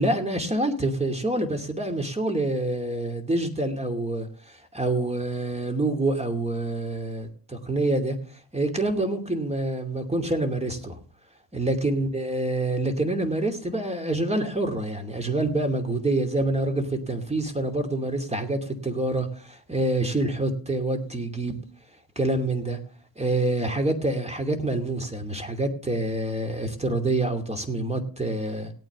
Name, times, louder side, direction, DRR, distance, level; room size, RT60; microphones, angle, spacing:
voice 1, 0.0-8.2 8.5-11.0 11.5-21.6 22.2-22.8 23.2-28.7, right 2 dB, 15° right, 6 dB, 2.6 m, -26 dB
18.0 x 9.0 x 3.7 m, 0.40 s
cardioid pair, 90°, 48 cm